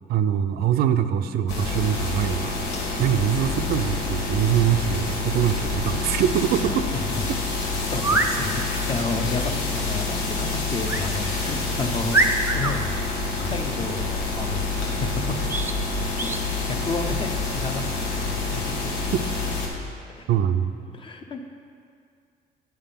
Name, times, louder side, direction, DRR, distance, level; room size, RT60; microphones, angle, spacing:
voice 1, 0.1-2.6 3.0-6.7 20.3-20.7, right 9 dB, 65° right, 9 dB, 0.4 m, -23 dB
sound 1, 1.5-19.7, left 3 dB, 90° left, 1.2 m, -27 dB
voice 2, 7.5-15.1 16.1-19.1 20.2-20.3 20.9-21.5, left 3 dB, 30° left, 4 dB, 0.6 m, -32 dB
sound 2, 7.9-8.3 10.9-11.1 11.6-11.7 12.1-12.7 15.5-15.8 16.2-16.4, right 2 dB, 15° right, 0.5 m, -23 dB
9.1 x 3.6 x 5.7 m, 2.3 s
cardioid pair, 110°, 17 cm